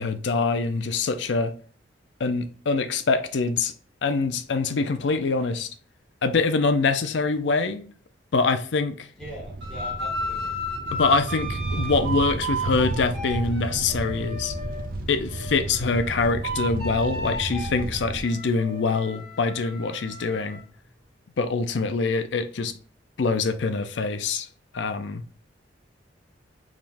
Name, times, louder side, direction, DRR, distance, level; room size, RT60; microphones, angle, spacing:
voice 1, 0.0-1.5 2.2-3.7 4.0-5.7 6.2-7.9 8.3-9.1 10.9-14.5 15.1-20.6 21.4-22.7 23.2-24.5 24.7-25.2, left 4 dB, 70° left, 0.5 m, -24 dB
voice 2, 9.2-10.5, equal, 5° left, 1.9 m, -41 dB
sound 1, 9.2-18.2, right 2 dB, 50° right, 0.5 m, -33 dB
sound 2, 9.6-14.9 15.3-20.6, equal, 70° right, 2.1 m, -34 dB
4.9 x 3.5 x 2.5 m
head